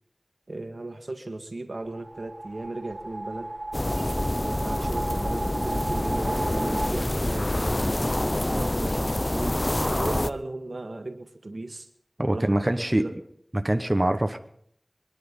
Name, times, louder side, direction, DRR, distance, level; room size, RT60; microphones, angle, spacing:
voice 1, 0.5-3.5 4.0-7.9 8.4-11.9 12.3-13.1, right 2 dB, 80° right, 6 dB, 1.7 m, -36 dB
sound 1, 1.8-6.9, right 1 dB, 50° right, 1.5 m, -34 dB
sound 2, 3.7-10.3, left 1 dB, 35° left, 0.7 m, -27 dB
voice 2, 12.2-13.0 13.5-14.4, right 1 dB, 30° right, 6 dB, 1.1 m, -24 dB
25.0 x 10.5 x 5.5 m, 0.66 s
wide cardioid pair, 50°, 0 cm